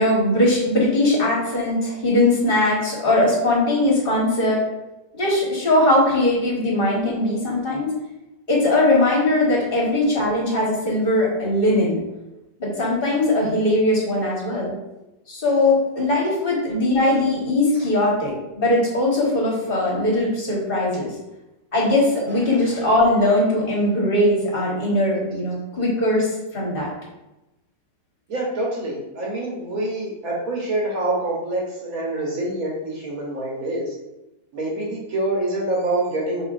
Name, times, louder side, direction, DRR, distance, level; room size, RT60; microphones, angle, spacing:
voice 1, 0.0-4.6 5.1-7.9 8.5-12.0 12.6-14.8 15.3-21.1 21.7-26.9, left 1 dB, 35° left, -4 dB, 1.4 m, -20 dB
voice 2, 28.3-33.9 34.5-36.4, right 2 dB, 55° right, -3 dB, 1.2 m, -26 dB
5.3 x 3.7 x 2.5 m, 0.97 s
omnidirectional pair, 1.9 m